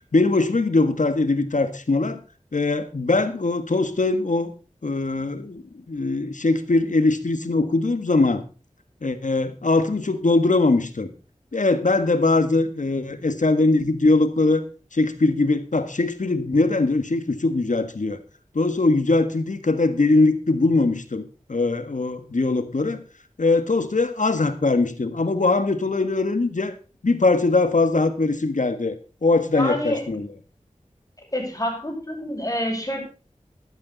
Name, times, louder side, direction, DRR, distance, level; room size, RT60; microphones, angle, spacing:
voice 1, 0.1-2.2 2.5-4.5 4.8-8.4 9.0-11.1 11.5-14.6 14.9-18.2 18.5-23.0 23.4-26.7 27.0-28.9 29.2-30.3, left 3 dB, 75° left, 11 dB, 1.7 m, -21 dB
voice 2, 29.5-30.0 31.3-33.0, equal, 25° left, 1 dB, 6.4 m, -27 dB
13.5 x 12.5 x 4.1 m, 0.33 s
wide cardioid pair, 40°, 13 cm